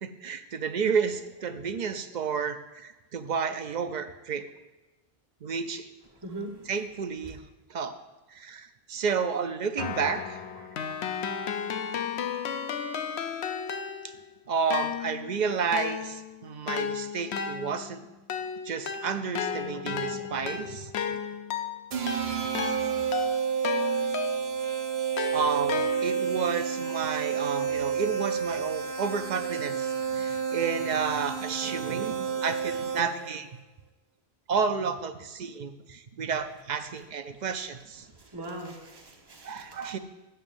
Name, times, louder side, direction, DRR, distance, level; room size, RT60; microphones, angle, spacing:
voice 1, 0.0-4.5 5.4-5.9 6.7-7.4 7.7-7.9 8.3-11.0 14.0-14.1 14.5-18.0 18.6-21.2 25.3-33.5 34.5-38.1 39.4-40.0, right 6 dB, 55° right, 9 dB, 0.6 m, -31 dB
Keyboard (musical), 9.8-14.3 14.7-24.6 25.2-26.4, left 7 dB, 85° left, 0.9 m, -34 dB
sound 1, 21.9-33.3, right 7 dB, 75° right, 1.1 m, -30 dB
voice 2, 38.2-39.9, right 2 dB, 25° right, 1 dB, 1.1 m, -40 dB
13.5 x 9.0 x 2.6 m, 1.1 s
omnidirectional pair, 1.1 m